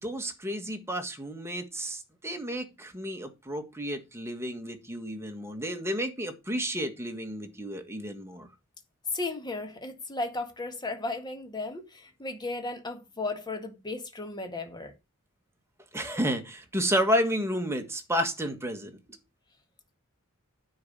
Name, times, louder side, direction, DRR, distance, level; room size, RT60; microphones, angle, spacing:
voice 1, 0.0-8.5 15.9-19.0, equal, 10° right, 1.6 m, -31 dB
voice 2, 9.1-15.0, left 2 dB, 20° left, 1.8 m, -35 dB
9.5 x 4.8 x 6.8 m
head